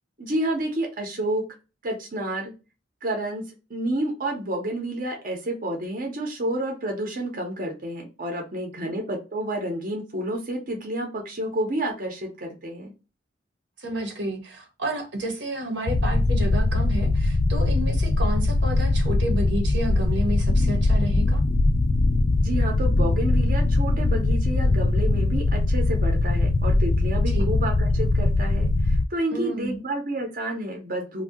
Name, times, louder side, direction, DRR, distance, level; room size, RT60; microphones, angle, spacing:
voice 1, 0.2-1.4 1.8-2.5 3.0-3.4 3.7-12.9 22.4-31.2, right 1 dB, 50° right, 0.8 m, -30 dB
voice 2, 13.8-21.4 27.3-27.5 29.3-29.8, right 1 dB, 80° right, 0.9 m, -31 dB
sound 1, 15.9-29.0, left 2 dB, 45° left, 0.3 m, -21 dB
2.7 x 2.3 x 3.5 m
head